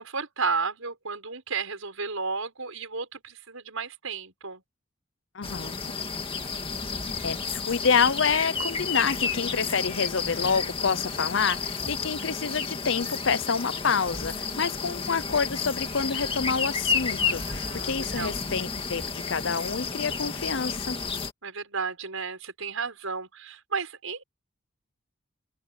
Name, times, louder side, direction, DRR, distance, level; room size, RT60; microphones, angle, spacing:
voice 1, 0.0-4.6 17.5-18.4 21.4-24.2, right 5 dB, 80° right, 5.8 m, -33 dB
voice 2, 5.3-5.7 7.2-21.0, left 5 dB, 60° left, 0.7 m, -28 dB
sound 1, 5.4-21.3, left 5 dB, 25° left, 2.0 m, -31 dB
head